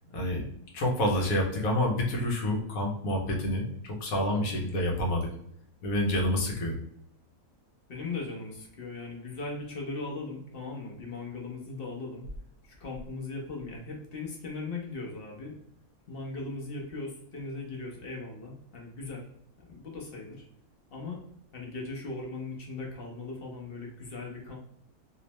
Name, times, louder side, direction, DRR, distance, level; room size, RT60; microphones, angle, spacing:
voice 1, 0.1-0.5 0.7-5.3 5.8-6.7, left 1 dB, 75° left, 0 dB, 1.3 m, -28 dB
voice 2, 7.9-12.2 12.6-15.6 16.1-19.3 19.6-20.5 20.9-21.2 21.5-24.6, left 3 dB, 45° left, -1 dB, 0.9 m, -38 dB
3.1 x 3.0 x 2.9 m, 0.72 s
omnidirectional pair, 1.5 m